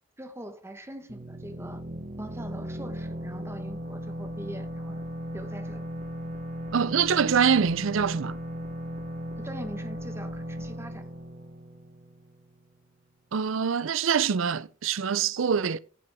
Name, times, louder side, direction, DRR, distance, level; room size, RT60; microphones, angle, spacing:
voice 1, 0.2-1.8 2.2-5.0 5.3-5.9 9.4-11.1, right 1 dB, 15° right, 1.1 m, -42 dB
sound 1, 1.1-12.6, equal, 40° right, 1.0 m, -37 dB
voice 2, 6.7-8.4 13.3-15.8, right 7 dB, 70° right, 0.5 m, -24 dB
15.0 x 6.0 x 3.5 m
head